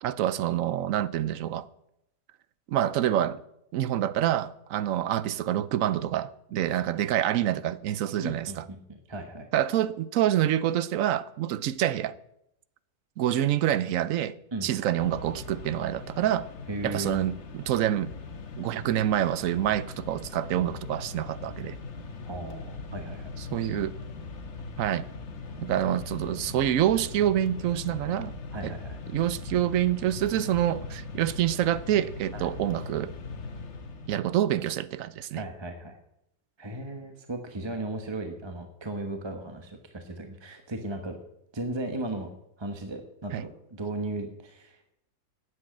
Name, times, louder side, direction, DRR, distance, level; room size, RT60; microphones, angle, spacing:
voice 1, 0.0-1.7 2.7-3.4 3.7-8.6 9.5-12.1 13.2-14.3 14.6-16.5 16.8-18.1 18.6-21.8 23.5-23.9 24.8-25.1 25.6-28.3 28.6-28.7 29.1-33.1 34.1-35.4 43.3-43.4, right 11 dB, 70° right, 1.0 m, -27 dB
voice 2, 8.2-9.5 14.5-14.7 16.7-17.3 22.3-23.8 25.5-25.7 28.5-29.0 32.3-32.5 35.3-36.0 36.6-41.2 41.5-42.3 42.6-44.9, right 2 dB, 20° right, 1.0 m, -36 dB
Mechanisms, 15.0-34.4, left 4 dB, 55° left, 1.4 m, -40 dB
9.7 x 7.9 x 8.6 m
omnidirectional pair, 1.5 m